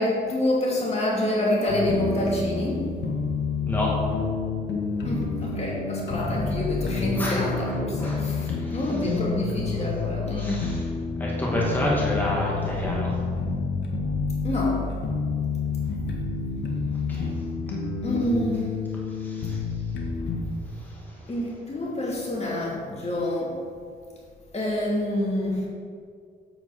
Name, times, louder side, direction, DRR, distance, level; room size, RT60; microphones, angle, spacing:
voice 1, 0.0-2.9 5.0-10.6 14.4-14.8 18.0-18.7 21.3-23.6 24.5-25.6, left 1 dB, 35° left, -4 dB, 2.5 m, -27 dB
sound 1, 1.7-20.4, left 4 dB, 60° left, 1.6 m, -29 dB
voice 2, 7.2-8.9 10.3-10.9 11.2-13.2 17.1-17.3 19.2-19.6 20.9-21.2, left 1 dB, 10° left, -5 dB, 2.3 m, -30 dB
8.0 x 7.7 x 4.9 m, 2.1 s
cardioid pair, 90°, 20 cm